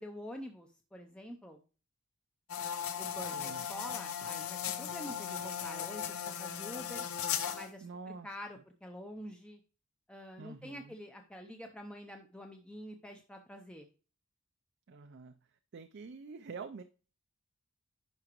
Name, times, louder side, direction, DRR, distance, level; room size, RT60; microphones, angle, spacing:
voice 1, 0.0-1.6 3.0-7.1 7.5-9.6 10.1-13.9, equal, 5° left, 3 dB, 0.5 m, -47 dB
sound 1, 2.5-7.7, left 8 dB, 80° left, 0.8 m, -37 dB
voice 2, 3.3-3.6 7.8-8.3 10.4-11.0 14.9-15.4 15.7-16.8, right 4 dB, 50° right, 8 dB, 0.4 m, -46 dB
11.0 x 4.9 x 3.0 m, 0.36 s
head